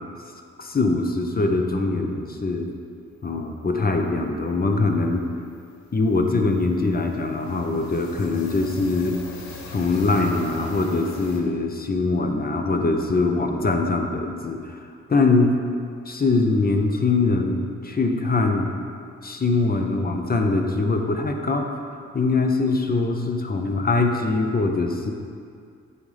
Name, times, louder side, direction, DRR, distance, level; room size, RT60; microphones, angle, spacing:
voice 1, 0.6-2.7 3.2-5.2 5.9-9.2 9.7-14.8 15.1-15.6 16.1-18.7 19.2-25.1, left 3 dB, 30° left, 3 dB, 0.7 m, -22 dB
sound 1, 3.0-3.1 3.4-3.6 3.9-11.4, left 3 dB, 65° left, 0.9 m, -43 dB
9.3 x 3.7 x 3.3 m, 2.3 s
supercardioid pair, 55°, 30 cm